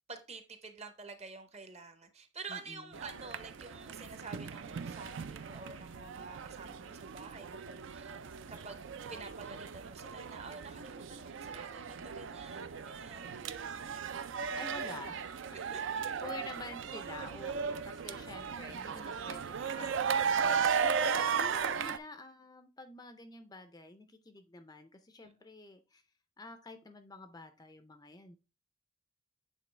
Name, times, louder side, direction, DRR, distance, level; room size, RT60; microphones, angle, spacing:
voice 1, 0.1-8.2 8.5-13.5 15.5-16.1 25.2-25.3, right 4 dB, 30° right, 0.7 m, -49 dB
voice 2, 2.5-3.0 14.3-15.6 16.0-26.0 26.4-28.4, left 3 dB, 20° left, 0.4 m, -49 dB
sound 1, 2.9-22.0, right 6 dB, 60° right, 0.4 m, -36 dB
8.3 x 3.9 x 3.2 m
head